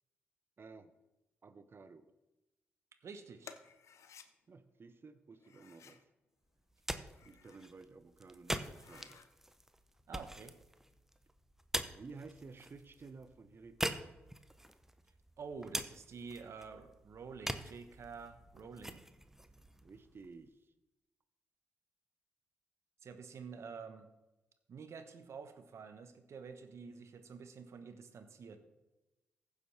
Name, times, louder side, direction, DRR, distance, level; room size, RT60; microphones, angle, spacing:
voice 1, 0.6-0.9 1.4-2.1 4.5-6.0 7.2-9.2 11.9-14.1 19.8-20.7, right 4 dB, 45° right, 12 dB, 0.9 m, -54 dB
voice 2, 3.0-3.5 10.1-10.6 15.4-19.0 23.0-24.1 24.7-28.6, right 5 dB, 60° right, 9 dB, 1.1 m, -49 dB
sound 1, 3.4-4.3 5.4-6.0 7.0-7.7 8.2-8.3 8.6-9.3, left 7 dB, 65° left, 0.7 m, -57 dB
sound 2, 6.6-20.5, right 1 dB, 5° right, 0.9 m, -44 dB
15.0 x 6.7 x 3.3 m, 1.0 s
hypercardioid pair, 40°, 5 cm